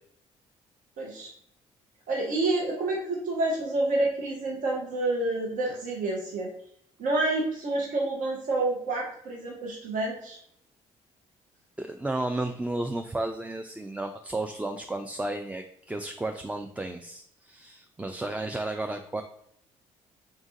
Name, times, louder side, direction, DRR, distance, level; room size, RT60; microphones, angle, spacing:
voice 1, 1.0-1.3 2.1-6.5 7.0-10.4, right 2 dB, 65° right, -2 dB, 1.0 m, -28 dB
voice 2, 11.8-19.2, right 2 dB, 10° right, 5 dB, 0.3 m, -33 dB
3.8 x 2.5 x 3.7 m, 0.71 s
hypercardioid pair, 55°, 14 cm